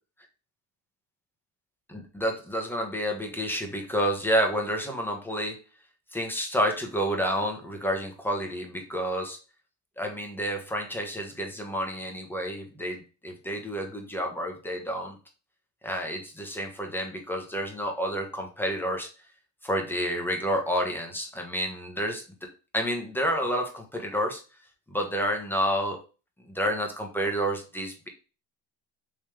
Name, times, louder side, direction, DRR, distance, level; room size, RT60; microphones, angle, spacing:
voice 1, 1.9-5.6 6.1-9.4 10.0-15.2 15.8-19.1 19.6-22.2 22.7-24.4 24.9-26.0 26.5-28.1, equal, 5° left, 2 dB, 1.2 m, -29 dB
3.6 x 3.1 x 3.1 m, 0.33 s
supercardioid pair, 80°, 43 cm